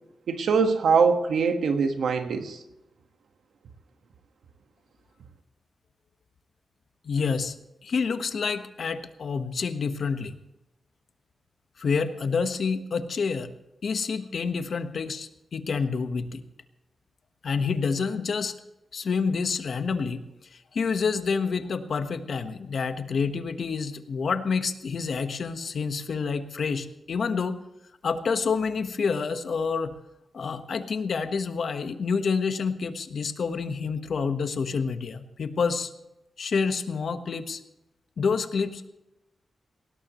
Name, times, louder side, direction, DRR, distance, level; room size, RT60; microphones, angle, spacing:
voice 1, 0.3-2.6, right 5 dB, 90° right, 6 dB, 1.5 m, -23 dB
voice 2, 7.0-7.6 7.8-10.4 11.8-13.5 13.8-16.5 17.4-18.5 18.9-27.6 28.0-29.9 30.3-35.9 36.4-37.6 38.2-38.9, left 5 dB, 60° left, 8 dB, 1.3 m, -28 dB
19.0 x 17.5 x 3.1 m, 0.93 s
wide cardioid pair, 110°, 0 cm